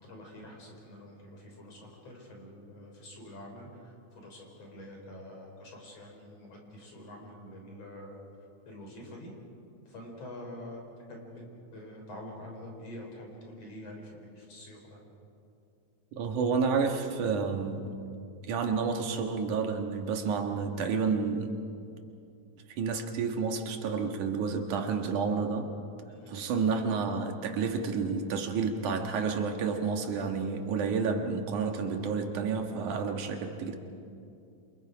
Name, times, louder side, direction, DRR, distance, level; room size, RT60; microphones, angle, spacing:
voice 1, 0.0-8.2 8.6-9.3 9.9-10.8 11.1-11.4 11.7-15.0 26.1-26.4, left 1 dB, 50° left, 0 dB, 5.0 m, -46 dB
voice 2, 16.2-17.9 18.5-21.5 22.8-25.7 26.3-33.8, right 5 dB, 75° right, 4 dB, 3.0 m, -30 dB
28.0 x 27.5 x 5.1 m, 2.6 s
omnidirectional pair, 3.6 m